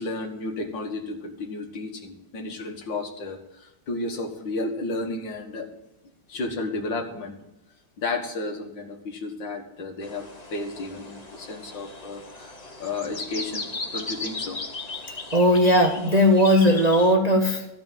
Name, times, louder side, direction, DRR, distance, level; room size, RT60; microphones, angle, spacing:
voice 1, 0.0-5.7 6.3-7.4 8.0-13.7 13.9-14.6, left 2 dB, 85° left, 4 dB, 2.3 m, -32 dB
sound 1, 10.0-17.1, left 3 dB, 25° left, 1.0 m, -37 dB
voice 2, 15.3-17.7, equal, 30° right, 2 dB, 0.8 m, -18 dB
14.0 x 5.2 x 9.1 m, 0.92 s
omnidirectional pair, 1.9 m